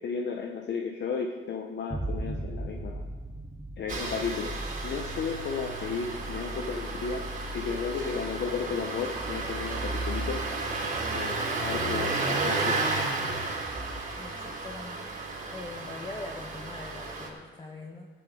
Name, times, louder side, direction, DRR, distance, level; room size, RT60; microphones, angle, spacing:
voice 1, 0.0-3.0 3.8-4.6 4.8-7.3 7.5-10.4 11.1-12.8, left 5 dB, 55° left, 2 dB, 1.0 m, -33 dB
sound 1, 1.9-9.3, right 1 dB, 10° right, 0.8 m, -40 dB
Engine starting, 3.9-17.3, right 3 dB, 40° right, 3.3 m, -32 dB
voice 2, 14.2-15.1 15.5-18.1, left 2 dB, 20° left, 0 dB, 1.2 m, -42 dB
18.5 x 10.5 x 3.9 m, 1.4 s
wide cardioid pair, 155°, 21 cm